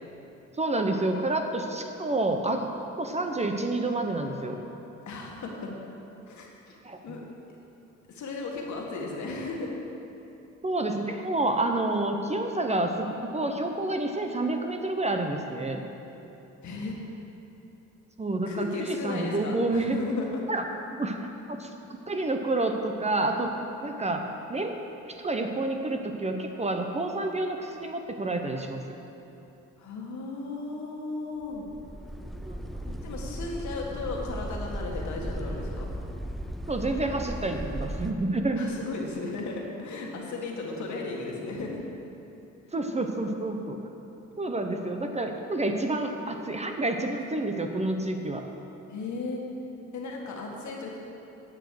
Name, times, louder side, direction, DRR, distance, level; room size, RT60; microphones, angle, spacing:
voice 1, 0.6-2.7 3.0-4.6 6.8-7.2 10.6-15.8 18.2-20.0 20.5-21.2 21.5-21.7 22.1-23.5 23.8-24.8 25.1-28.8 32.4-32.6 36.7-38.7 42.7-43.8 44.4-48.5, right 2 dB, 20° right, 4 dB, 0.8 m, -29 dB
voice 2, 5.1-5.7 6.3-6.8 7.0-7.2 8.1-9.7 16.6-17.0 18.5-20.4 29.8-31.6 32.9-35.9 38.6-41.8 48.9-49.4 49.9-51.0, left 3 dB, 70° left, -1 dB, 1.8 m, -35 dB
sound 1, 31.5-38.1, equal, ahead, 0.4 m, -36 dB
9.8 x 6.6 x 6.5 m, 3.0 s
cardioid pair, 90°, 30 cm